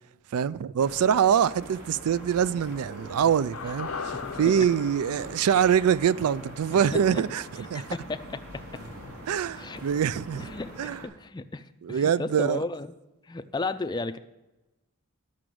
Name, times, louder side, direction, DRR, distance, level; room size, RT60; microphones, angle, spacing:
voice 1, 0.3-7.8 9.3-10.5 10.8-11.0 11.8-12.6, right 8 dB, 80° right, 0.4 m, -24 dB
sound 1, 0.8-11.0, equal, 65° right, 2.4 m, -43 dB
sound 2, 3.5-7.8 8.1-8.2, left 6 dB, 70° left, 0.6 m, -40 dB
voice 2, 4.1-4.7 6.7-6.8 7.1-7.2 7.7-8.9 9.6-9.8 10.4-12.9 13.3-14.2, left 3 dB, 20° left, 0.4 m, -34 dB
11.5 x 6.0 x 7.6 m
head